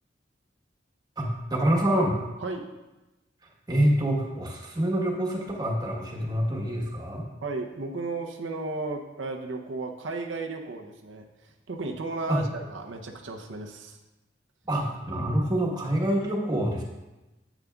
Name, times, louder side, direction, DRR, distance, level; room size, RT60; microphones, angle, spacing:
voice 1, 1.2-2.1 3.7-7.2 12.3-12.4 14.6-16.8, right 1 dB, 20° right, -1 dB, 1.3 m, -26 dB
voice 2, 7.4-11.3 11.7-14.0, right 3 dB, 90° right, 2 dB, 0.7 m, -34 dB
8.8 x 8.1 x 2.4 m, 1.0 s
head